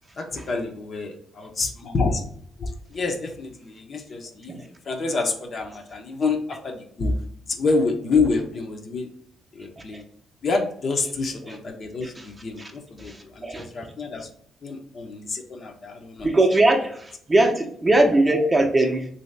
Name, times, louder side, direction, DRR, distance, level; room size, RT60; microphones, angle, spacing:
voice 1, 0.2-2.2 2.6-7.2 7.5-9.1 9.5-10.0 10.4-14.3 14.6-16.3, left 3 dB, 45° left, 0.6 m, -27 dB
voice 2, 16.2-19.1, right 2 dB, 20° right, 0.6 m, -20 dB
3.1 x 2.7 x 3.2 m
cardioid pair, 90°, 0 cm